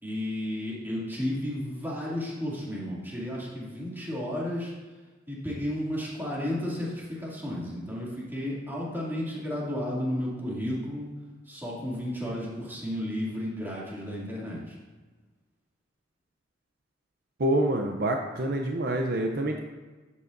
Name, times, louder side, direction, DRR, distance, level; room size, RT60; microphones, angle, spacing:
voice 1, 0.0-4.7 5.3-11.1 11.4-14.8, left 1 dB, 10° right, -6 dB, 2.4 m, -33 dB
voice 2, 17.4-19.6, right 1 dB, 55° right, 3 dB, 0.6 m, -26 dB
12.0 x 8.4 x 2.6 m, 1.3 s
head